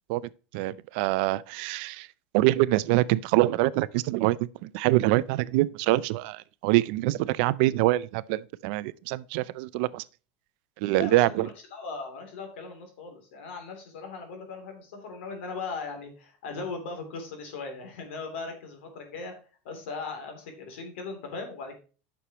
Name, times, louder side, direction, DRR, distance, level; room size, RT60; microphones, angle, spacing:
voice 1, 0.5-2.1 2.3-10.0 10.8-11.5, right 17 dB, 65° right, 0.5 m, -25 dB
voice 2, 10.9-19.3 19.6-21.8, left 4 dB, 80° left, 3.2 m, -38 dB
9.9 x 6.2 x 3.0 m
supercardioid pair, 140°, 6 cm